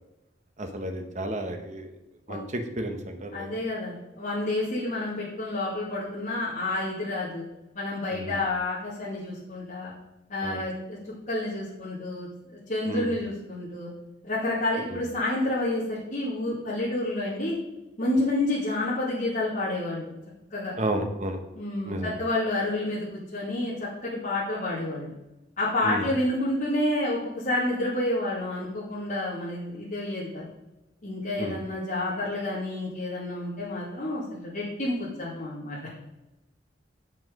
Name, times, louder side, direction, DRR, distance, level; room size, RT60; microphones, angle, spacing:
voice 1, 0.6-1.9 2.3-3.6 8.1-8.3 10.4-10.6 12.9-13.1 14.9-15.0 20.8-21.4 21.8-22.1 25.8-26.1 31.4-31.6, right 1 dB, 40° right, 5 dB, 1.0 m, -32 dB
voice 2, 3.3-7.4 7.7-9.9 10.3-11.0 11.3-13.9 14.2-17.6 18.0-20.1 20.5-20.7 21.5-25.1 25.6-30.5 31.0-35.8, left 1 dB, 45° left, -8 dB, 2.4 m, -29 dB
7.3 x 6.2 x 5.2 m, 0.98 s
head